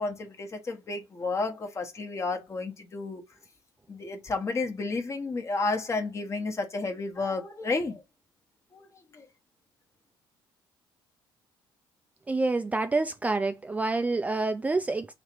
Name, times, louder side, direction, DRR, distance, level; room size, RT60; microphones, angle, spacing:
voice 1, 0.0-3.2 3.9-8.0 8.7-8.9 9.1-9.2, left 3 dB, 30° left, 1.1 m, -31 dB
voice 2, 12.3-15.1, right 3 dB, 15° right, 0.4 m, -27 dB
3.2 x 2.9 x 4.4 m
cardioid pair, 100°, 9 cm